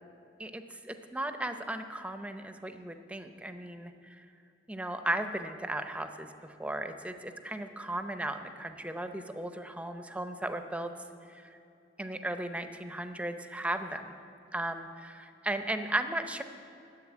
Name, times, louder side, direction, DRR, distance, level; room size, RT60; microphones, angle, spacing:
voice 1, 0.4-4.3 4.7-10.9 11.3-11.6 12.0-14.1 14.5-16.4, right 1 dB, 10° right, 8 dB, 0.6 m, -36 dB
10.5 x 7.9 x 9.7 m, 2.7 s
head